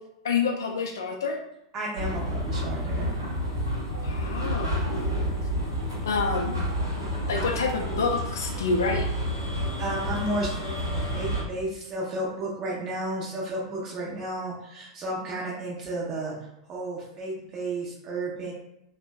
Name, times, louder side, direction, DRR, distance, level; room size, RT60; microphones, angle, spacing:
voice 1, 0.2-1.4 3.9-4.8 6.0-6.6 7.3-9.1, left 4 dB, 65° left, 2 dB, 0.3 m, -27 dB
voice 2, 1.7-3.1 9.8-16.4 16.7-18.5, right 1 dB, 30° right, -4 dB, 0.6 m, -32 dB
sound 1, 2.0-11.4, equal, 85° right, 0.7 m, -29 dB
2.6 x 2.1 x 2.2 m, 0.83 s
figure-of-eight pair, 90°, 2 cm